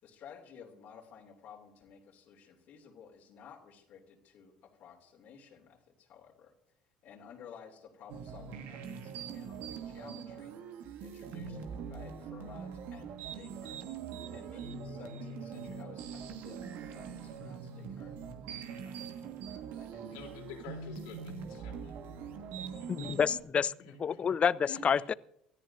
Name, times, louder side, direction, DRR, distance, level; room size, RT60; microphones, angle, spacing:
voice 1, 0.0-6.5 7.0-10.6 11.0-13.8 14.3-18.2 18.8-19.1 19.4-20.1 22.7-22.8, left 7 dB, 55° left, 0 dB, 3.0 m, -54 dB
sound 1, 8.1-23.4, right 6 dB, 60° right, 1.7 m, -43 dB
voice 2, 20.1-22.0 22.6-23.2 23.5-24.2 24.6-25.1, left 6 dB, 75° left, 0 dB, 3.4 m, -49 dB
voice 3, 22.9-23.7 24.0-25.1, left 7 dB, 35° left, 21 dB, 0.4 m, -28 dB
27.0 x 14.0 x 2.7 m, 0.78 s
hypercardioid pair, 65°, 3 cm